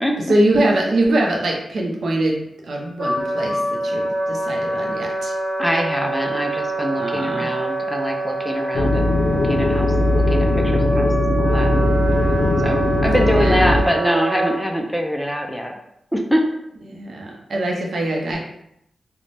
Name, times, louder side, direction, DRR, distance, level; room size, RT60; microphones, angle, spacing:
voice 1, 0.3-5.3 7.0-7.5 13.1-13.8 16.9-18.4, right 1 dB, 70° right, 0 dB, 0.6 m, -23 dB
Wind instrument woodwind instrument, 3.0-14.6, right 2 dB, 25° right, 1.4 m, -25 dB
voice 2, 5.6-9.1 9.5-9.9 10.1-11.9 12.2-15.7 16.1-16.5, equal, ahead, 2 dB, 0.4 m, -24 dB
sound 1, 8.7-13.8, left 2 dB, 85° left, 0.5 m, -19 dB
2.5 x 2.1 x 3.2 m, 0.78 s
cardioid pair, 85°, 0 cm